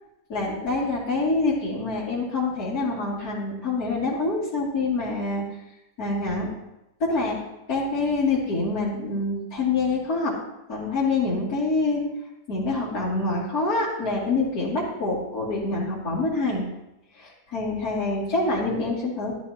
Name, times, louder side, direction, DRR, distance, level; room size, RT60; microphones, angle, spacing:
voice 1, 0.3-5.4 6.0-6.5 7.1-7.4 7.7-10.3 10.7-12.0 12.5-16.6 17.2-19.3, left 3 dB, 65° left, -12 dB, 3.1 m, -26 dB
13.0 x 12.0 x 2.9 m, 0.93 s
omnidirectional pair, 1.7 m